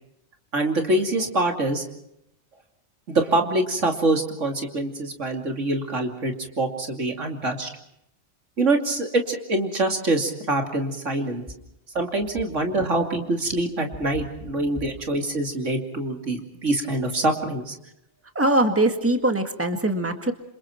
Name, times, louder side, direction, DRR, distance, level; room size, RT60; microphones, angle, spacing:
voice 1, 0.5-1.8 3.1-7.7 8.6-11.4 11.9-17.7, right 2 dB, 85° right, 3 dB, 3.1 m, -25 dB
voice 2, 18.4-20.3, right 1 dB, 10° right, 6 dB, 1.8 m, -22 dB
28.5 x 26.5 x 4.5 m, 0.81 s
omnidirectional pair, 1.2 m